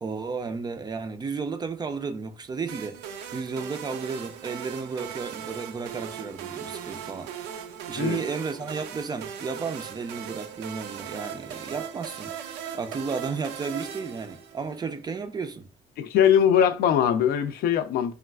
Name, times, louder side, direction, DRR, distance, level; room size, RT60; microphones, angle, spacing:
voice 1, 0.0-3.0 3.3-7.3 7.9-12.3 12.7-15.7, right 5 dB, 25° right, 0.4 m, -33 dB
sound 1, 2.7-14.9, right 8 dB, 85° right, 0.4 m, -39 dB
voice 2, 16.0-18.1, left 9 dB, 65° left, 0.4 m, -21 dB
3.2 x 2.3 x 2.2 m
cardioid pair, 110°, 17 cm